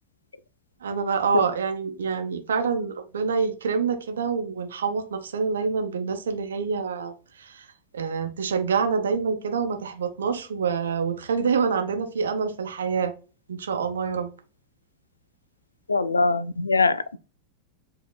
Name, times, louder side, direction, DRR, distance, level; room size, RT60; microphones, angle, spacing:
voice 1, 0.8-7.7 7.9-13.1 13.5-14.3, right 5 dB, 65° right, 0.8 m, -26 dB
voice 2, 15.9-17.2, left 3 dB, 80° left, 0.3 m, -22 dB
7.3 x 2.9 x 2.2 m
figure-of-eight pair, 90°, 0 cm